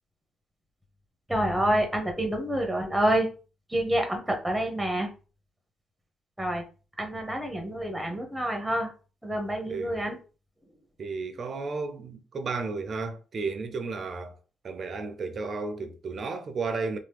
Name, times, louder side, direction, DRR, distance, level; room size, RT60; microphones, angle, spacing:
voice 1, 1.3-3.3 3.7-5.1 6.4-6.6 7.0-8.9 9.2-10.2, right 1 dB, 5° right, 0.9 m, -27 dB
voice 2, 9.7-10.0 11.0-14.4 14.6-17.0, right 4 dB, 50° right, 0.5 m, -33 dB
2.9 x 2.0 x 3.4 m
cardioid pair, 90°, 0 cm